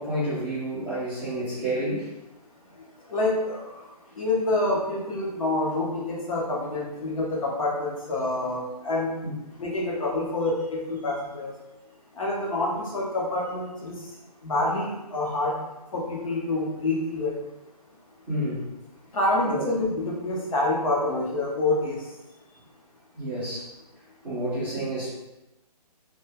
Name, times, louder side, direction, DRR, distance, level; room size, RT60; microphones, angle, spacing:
voice 1, 0.0-2.1 9.2-9.3 18.3-18.7 19.4-19.6 23.2-23.7 24.2-25.1, right 1 dB, 5° right, -15 dB, 0.4 m, -29 dB
voice 2, 3.1-3.9 4.2-9.1 9.6-11.5 12.2-14.0 14.4-15.5 15.9-17.3 19.1-22.0, left 2 dB, 55° left, -3 dB, 0.8 m, -27 dB
2.2 x 2.1 x 3.3 m, 0.99 s
hypercardioid pair, 160°, 21 cm